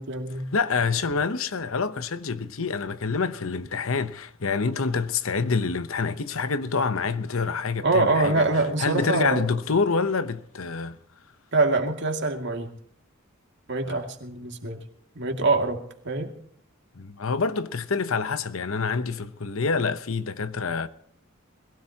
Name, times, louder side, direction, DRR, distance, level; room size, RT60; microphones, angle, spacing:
voice 1, 0.0-0.5 7.8-9.5 11.5-12.7 13.7-14.8 15.1-16.3, right 3 dB, 55° right, 2.4 m, -24 dB
voice 2, 0.5-8.5 8.8-11.0 13.9-14.0 16.9-20.9, left 4 dB, 75° left, 0.9 m, -27 dB
21.5 x 16.5 x 2.9 m
head